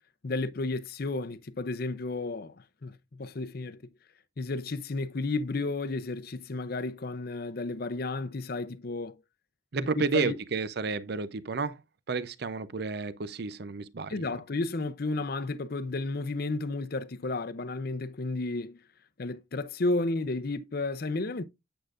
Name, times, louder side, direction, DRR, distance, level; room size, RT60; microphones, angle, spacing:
voice 1, 0.2-3.8 4.4-9.2 10.0-10.4 14.1-18.8 19.2-21.4, left 3 dB, 50° left, 0.6 m, -32 dB
voice 2, 9.7-11.7 12.1-14.3, right 4 dB, 55° right, 0.6 m, -31 dB
8.7 x 7.9 x 2.4 m
head